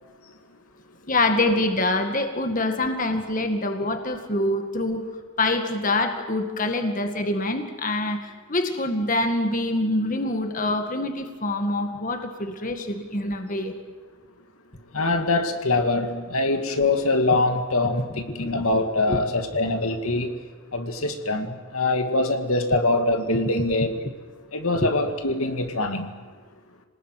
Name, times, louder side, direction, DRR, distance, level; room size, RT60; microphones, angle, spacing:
voice 1, 1.1-5.1 5.4-13.7 18.4-18.5 19.1-19.2, left 2 dB, 35° left, 6 dB, 2.0 m, -25 dB
voice 2, 14.9-20.3 20.7-24.0 24.5-26.1, left 2 dB, 80° left, 6 dB, 2.2 m, -23 dB
28.0 x 19.5 x 9.2 m, 1.4 s
head